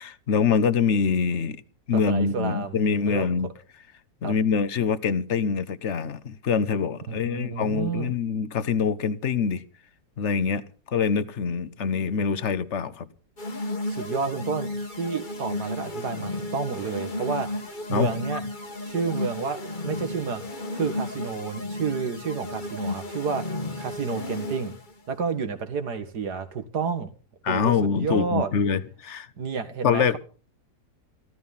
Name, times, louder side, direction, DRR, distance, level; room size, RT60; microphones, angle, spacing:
voice 1, 0.0-1.6 1.9-3.5 4.2-9.6 10.2-13.1 17.9-18.4 27.4-29.3 29.8-30.2, left 6 dB, 50° left, 1.1 m, -25 dB
voice 2, 1.9-2.8 3.1-3.3 4.2-4.3 7.1-8.1 13.9-17.5 17.9-18.4 18.8-20.4 20.7-23.4 23.8-24.7 25.1-27.1 27.5-28.5 29.4-30.2, right 5 dB, 65° right, 2.4 m, -30 dB
sound 1, 13.4-24.9, left 2 dB, 30° left, 1.4 m, -33 dB
15.0 x 14.5 x 5.6 m
omnidirectional pair, 1.9 m